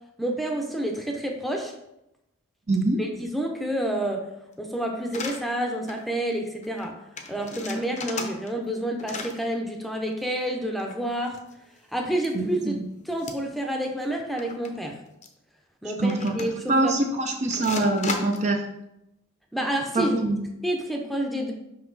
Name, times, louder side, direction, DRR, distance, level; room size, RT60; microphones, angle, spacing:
voice 1, 0.2-1.7 3.0-4.2 4.6-6.9 7.3-11.4 11.9-12.8 13.0-14.9 15.8-16.9 19.5-20.2 20.6-21.5, right 1 dB, ahead, 2 dB, 0.8 m, -29 dB
voice 2, 2.7-3.0 12.3-12.8 16.0-18.6 19.9-20.5, right 2 dB, 35° right, 3 dB, 0.6 m, -24 dB
sound 1, 5.1-5.4 5.9-6.1 6.3-6.4 6.6-6.9 7.2-8.7 9.0-9.4 10.7-11.8 12.2-12.3 13.2-13.6 13.8-13.9 14.4-14.7 15.2-15.3 16.1-16.7 17.5-18.5, left 4 dB, 35° left, 0.8 m, -35 dB
5.7 x 5.4 x 4.0 m, 0.86 s
head